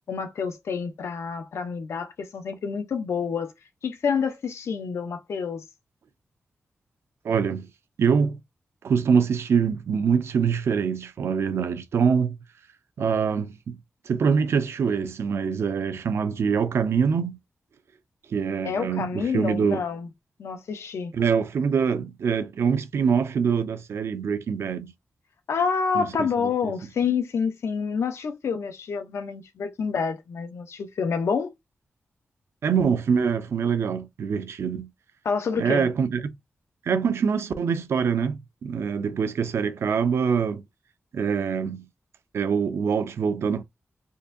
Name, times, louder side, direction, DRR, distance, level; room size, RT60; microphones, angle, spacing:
voice 1, 0.1-3.5 3.8-5.6 18.6-20.1 20.4-21.1 25.5-31.5 35.2-35.9, left 6 dB, 90° left, 0.6 m, -28 dB
voice 2, 7.2-7.7 8.0-8.4 8.8-12.4 13.0-13.8 14.1-17.4 18.3-19.8 21.1-24.9 25.9-26.7 32.6-34.9 35.6-36.3 36.9-40.6 41.1-41.9 42.3-43.6, right 6 dB, 75° right, 0.5 m, -24 dB
3.8 x 2.5 x 2.6 m
wide cardioid pair, 175°, 4 cm